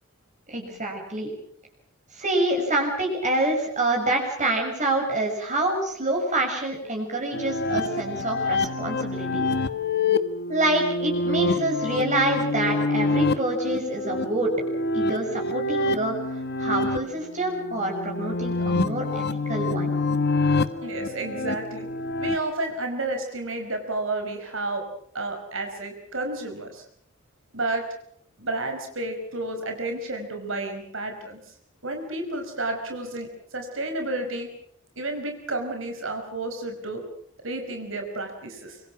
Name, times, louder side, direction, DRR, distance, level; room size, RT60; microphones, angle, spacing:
voice 1, 0.5-1.3 2.1-9.5 10.5-14.6 14.9-19.9, right 1 dB, 35° right, 1 dB, 6.8 m, -26 dB
sound 1, 7.3-22.4, left 3 dB, 55° left, 1.5 m, -26 dB
voice 2, 20.8-21.9 22.2-24.8 25.1-26.8 27.5-27.9 28.4-31.5 31.8-34.5 35.0-37.0 37.4-38.8, right 2 dB, 70° right, 5 dB, 5.2 m, -31 dB
26.5 x 25.5 x 6.1 m, 0.69 s
head